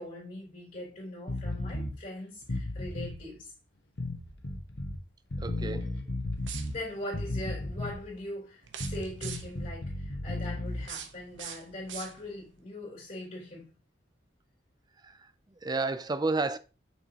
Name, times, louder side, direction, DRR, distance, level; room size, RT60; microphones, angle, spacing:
voice 1, 0.0-3.5 6.7-13.7, left 1 dB, 35° left, 3.5 m, -41 dB
sound 1, 1.3-1.9 2.4-3.2 4.0-5.0 5.3-6.8 7.1-8.1 8.8-10.9, left 1 dB, 60° left, 1.3 m, -34 dB
voice 2, 5.4-5.9 15.0-16.6, right 3 dB, 20° right, 0.5 m, -32 dB
sound 2, 6.4-7.0 8.6-9.7 10.7-12.5, right 9 dB, 80° right, 0.9 m, -43 dB
6.5 x 6.0 x 2.9 m
head